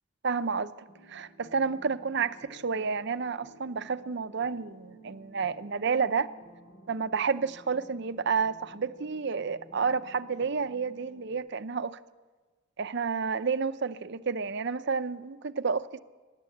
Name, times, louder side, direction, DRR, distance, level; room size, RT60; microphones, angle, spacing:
voice 1, 0.2-0.7 1.1-6.3 6.9-12.0 12.8-16.0, right 5 dB, 60° right, 13 dB, 0.7 m, -30 dB
sound 1, 0.9-11.3, right 1 dB, 80° left, 3.9 m, -54 dB
28.5 x 11.5 x 8.6 m, 1.3 s
head